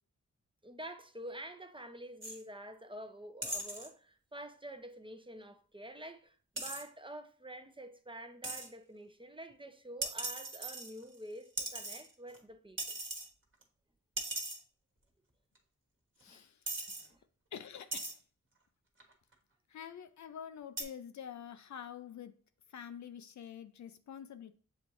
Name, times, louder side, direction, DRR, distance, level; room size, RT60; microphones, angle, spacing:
voice 1, 0.6-12.8 16.3-16.5 17.1-17.2, right 1 dB, 15° right, 0.6 m, -48 dB
sound 1, 2.2-2.4 3.4-3.9 6.6-6.8 8.4-8.7 10.0-11.2 11.6-12.4 12.8-13.3 13.6-13.7 14.2-14.6 15.5-15.6 16.2-16.3 16.7-17.1 17.9-18.1 19.0-19.3 20.8-20.9, right 2 dB, 40° right, 1.3 m, -39 dB
voice 2, 16.2-16.6 17.0-17.1 17.5-18.2 19.7-22.4 22.7-24.5, left 8 dB, 60° left, 0.5 m, -47 dB
6.9 x 2.5 x 3.0 m
cardioid pair, 40°, 32 cm